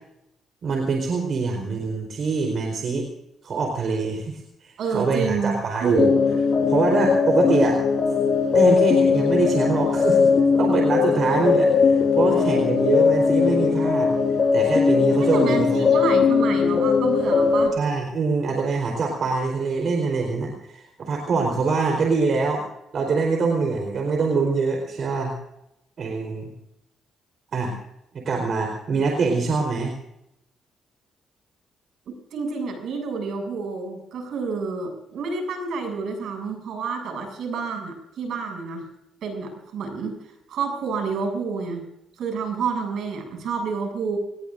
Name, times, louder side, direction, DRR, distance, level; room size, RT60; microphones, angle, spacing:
voice 1, 0.6-3.1 3.4-6.1 6.7-7.8 8.5-10.3 10.6-14.1 14.5-15.8 17.8-22.6 22.9-25.3 26.0-26.5 27.5-27.7 28.1-29.9, right 4 dB, 55° right, 2 dB, 4.2 m, -24 dB
voice 2, 4.8-6.1 15.2-17.8 32.1-38.8 39.2-40.2 40.5-41.8 42.2-44.2, right 5 dB, 70° right, 4 dB, 7.5 m, -28 dB
sound 1, 6.0-17.7, left 5 dB, 45° left, 4.2 m, -19 dB
25.0 x 20.0 x 2.6 m, 0.83 s
cardioid pair, 90°, 0 cm